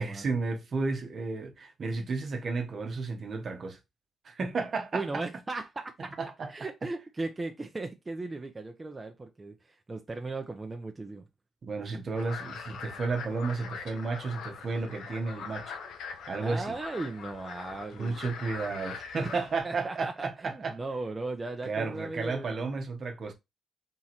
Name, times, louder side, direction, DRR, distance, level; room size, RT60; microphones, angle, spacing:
voice 1, 0.0-3.8 4.2-5.2 6.2-6.5 11.6-15.8 16.3-16.7 18.0-20.8 21.6-23.3, right 4 dB, 55° right, 1.0 m, -32 dB
voice 2, 4.9-6.1 6.5-11.3 16.4-18.2 19.2-19.3 19.6-22.7, right 3 dB, 25° right, 0.6 m, -37 dB
sound 1, 12.2-19.6, left 6 dB, 80° left, 0.8 m, -42 dB
3.7 x 3.0 x 4.2 m
cardioid pair, 75°, 0 cm